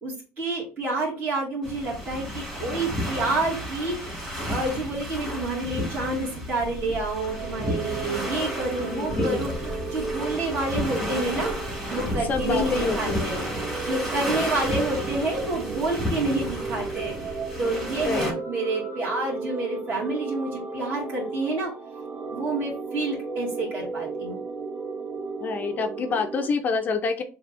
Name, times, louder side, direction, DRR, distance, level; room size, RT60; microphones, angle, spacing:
voice 1, 0.0-11.5 11.9-21.7 22.2-24.4, right 2 dB, 35° right, -6 dB, 2.1 m, -29 dB
sound 1, 1.6-18.3, equal, 5° right, 2.2 m, -32 dB
sound 2, 7.1-26.5, right 4 dB, 60° right, 1.5 m, -35 dB
voice 2, 8.9-9.4 12.3-13.3 18.0-18.3 25.4-27.2, left 4 dB, 30° left, 6 dB, 0.5 m, -27 dB
7.2 x 2.7 x 2.5 m, 0.36 s
cardioid pair, 160°, 6 cm